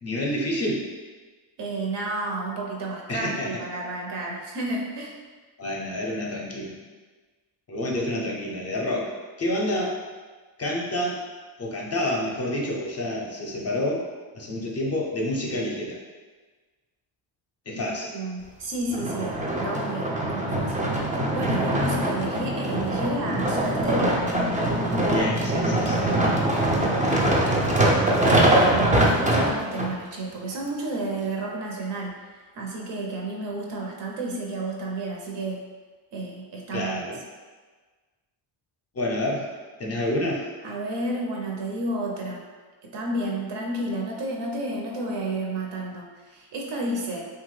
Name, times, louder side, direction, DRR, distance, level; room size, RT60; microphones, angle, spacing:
voice 1, 0.0-0.9 3.1-3.5 5.6-6.8 7.7-9.1 9.4-10.0 10.6-11.2 11.6-14.0 14.3-16.0 17.7-18.1 25.1-26.3 36.7-37.2 38.9-39.5 39.8-40.5, left 1 dB, 35° left, -2 dB, 0.5 m, -28 dB
voice 2, 1.6-5.1 17.7-17.8 18.1-20.9 21.3-24.2 26.0-26.4 26.7-27.6 27.8-35.6 36.1-37.1 40.6-42.4 42.8-47.2, right 2 dB, 60° right, -1 dB, 0.7 m, -31 dB
sound 1, 18.9-29.9 30.5-30.6, right 1 dB, 20° right, 0.4 m, -23 dB
2.9 x 2.3 x 3.1 m, 1.4 s
cardioid pair, 105°, 47 cm